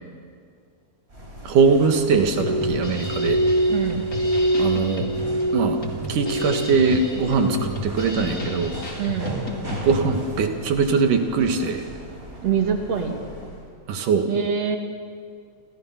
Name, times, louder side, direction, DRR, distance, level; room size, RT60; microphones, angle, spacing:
sound 1, 1.1-13.7, equal, 20° right, 4.8 m, -39 dB
voice 1, 1.4-3.4 4.6-5.1 5.5-5.8 6.1-8.8 9.7-11.9 13.9-14.3, right 4 dB, 85° right, 5 dB, 3.3 m, -21 dB
Glass, 2.2-6.8 7.1-7.8 8.2-8.7 9.3-9.6, right 1 dB, 35° right, 1.7 m, -25 dB
Drum kit, 2.4-10.0, left 1 dB, 30° left, 2.6 m, -33 dB
voice 2, 3.7-4.0 9.0-9.4 12.4-13.2 14.3-14.8, right 7 dB, 55° right, 3 dB, 3.0 m, -24 dB
29.5 x 26.5 x 5.8 m, 2.2 s
omnidirectional pair, 3.6 m